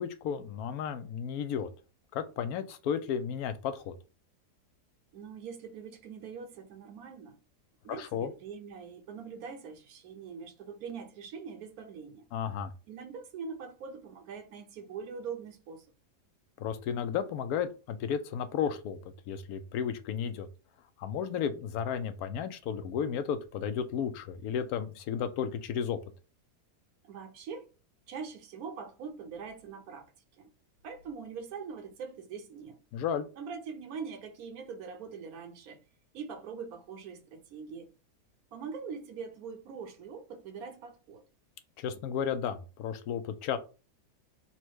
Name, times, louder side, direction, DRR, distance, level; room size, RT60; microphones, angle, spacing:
voice 1, 0.0-1.7 2.1-4.0 8.0-8.3 12.3-12.7 16.6-20.5 21.0-26.0 32.9-33.3 41.8-43.6, left 7 dB, 70° left, 1.0 m, -33 dB
voice 2, 5.1-7.4 7.8-12.3 12.9-15.9 27.0-27.7 28.1-30.1 30.4-30.5 30.8-32.8 33.4-35.8 36.1-37.9 38.5-41.2, right 6 dB, 70° right, 1.1 m, -43 dB
4.2 x 2.1 x 4.5 m
omnidirectional pair, 1.7 m